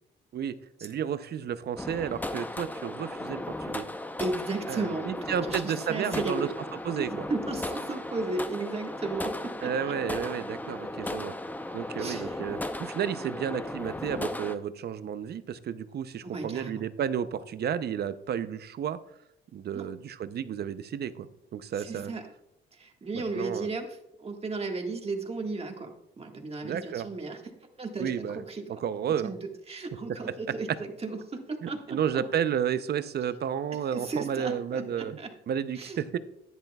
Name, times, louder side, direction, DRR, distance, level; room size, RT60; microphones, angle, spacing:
voice 1, 0.3-3.9 4.7-6.5 6.8-7.3 9.6-11.3 11.7-19.0 19.5-22.1 23.1-23.7 26.6-27.1 28.0-28.4 28.7-29.3 31.6-35.2 35.5-36.2, right 8 dB, 55° right, 14 dB, 0.6 m, -32 dB
sound 1, 1.8-14.5, left 1 dB, 10° left, 0.6 m, -36 dB
voice 2, 4.2-6.5 6.9-9.9 12.0-12.4 16.2-16.8 19.7-19.9 21.8-22.3 22.7-27.4 27.8-28.8 29.2-32.2 33.9-35.3 35.7-36.0, right 3 dB, 30° right, 2 dB, 1.6 m, -35 dB
10.5 x 10.0 x 2.3 m, 0.81 s
cardioid pair, 90°, 20 cm